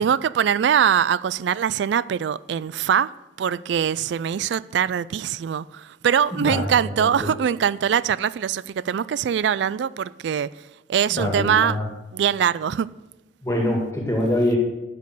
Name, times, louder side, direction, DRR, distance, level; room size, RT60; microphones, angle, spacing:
voice 1, 0.0-3.1 3.4-10.5 10.9-11.8 12.1-12.9, right 8 dB, 65° right, 0.3 m, -22 dB
voice 2, 6.3-6.7 7.0-7.1 11.1-11.8 13.4-14.6, left 1 dB, 15° left, 2.0 m, -24 dB
11.5 x 5.3 x 8.1 m
head